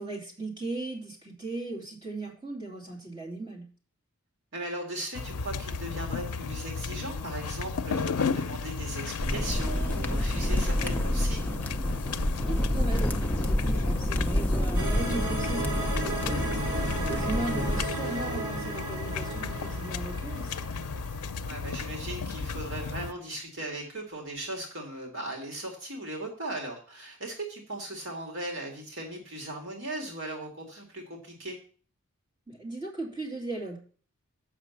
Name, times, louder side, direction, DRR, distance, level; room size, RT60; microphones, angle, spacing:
voice 1, 0.0-3.6 12.4-20.7 32.5-33.8, right 2 dB, 20° right, -2 dB, 2.8 m, -37 dB
voice 2, 4.5-11.6 17.0-17.3 21.4-31.6, right 1 dB, 55° right, 1 dB, 1.9 m, -38 dB
sound 1, 5.1-23.1, left 5 dB, 90° left, 0.5 m, -34 dB
sound 2, 9.2-17.9, left 1 dB, 10° left, 0.5 m, -28 dB
sound 3, 14.7-21.8, right 2 dB, 85° right, 2.5 m, -35 dB
7.5 x 6.0 x 7.1 m, 0.41 s
head